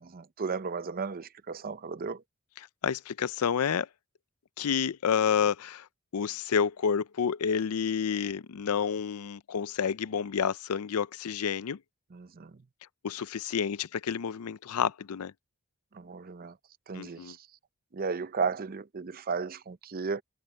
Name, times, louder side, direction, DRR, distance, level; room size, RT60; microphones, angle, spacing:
voice 1, 0.0-2.2 12.1-12.5 15.9-16.5 16.9-17.4 17.9-20.2, right 5 dB, 40° right, 0.6 m, -34 dB
voice 2, 2.8-3.9 4.6-5.9 6.1-11.8 13.0-15.3 16.9-17.4, left 7 dB, 90° left, 0.5 m, -29 dB
head